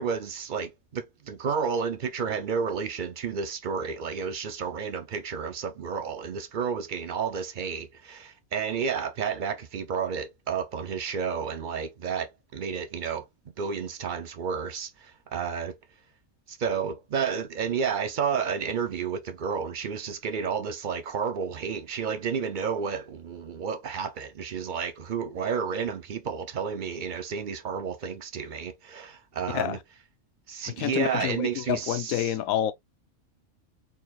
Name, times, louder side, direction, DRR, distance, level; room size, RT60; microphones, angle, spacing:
voice 1, 0.0-13.3 13.6-15.8 16.5-29.8 30.5-32.3, right 6 dB, 50° right, 0.6 m, -31 dB
voice 2, 30.8-32.7, left 12 dB, 80° left, 1.0 m, -28 dB
4.6 x 4.1 x 2.3 m
omnidirectional pair, 1.5 m